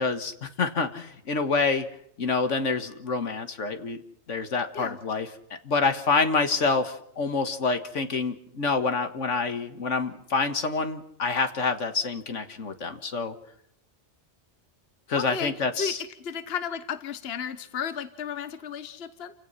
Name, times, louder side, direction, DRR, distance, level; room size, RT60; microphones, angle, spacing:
voice 1, 0.0-1.9 2.2-4.0 4.3-5.3 5.6-13.3 15.1-16.0, left 4 dB, 75° left, 9 dB, 1.9 m, -27 dB
voice 2, 15.2-19.3, left 7 dB, 55° left, 11 dB, 1.2 m, -33 dB
29.0 x 17.5 x 5.7 m, 0.73 s
omnidirectional pair, 1.3 m